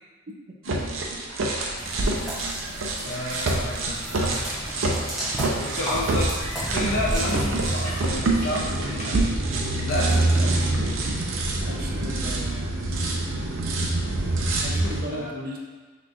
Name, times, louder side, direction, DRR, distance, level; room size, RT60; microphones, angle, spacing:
sound 1, 0.7-15.0, right 2 dB, 85° right, 0.6 m, -26 dB
sound 2, 1.8-8.0, equal, ahead, 1.1 m, -34 dB
voice 1, 3.0-4.5 5.6-9.1 9.8-10.7 15.1-15.3, left 1 dB, 65° left, -5 dB, 0.6 m, -31 dB
sound 3, 4.7-4.8 5.1-5.5 6.0-9.1 9.8-9.9, equal, 40° left, 1.4 m, -35 dB
voice 2, 11.2-12.7 14.6-15.6, right 1 dB, 45° right, 0 dB, 0.6 m, -36 dB
5.9 x 3.1 x 2.5 m, 1.4 s
head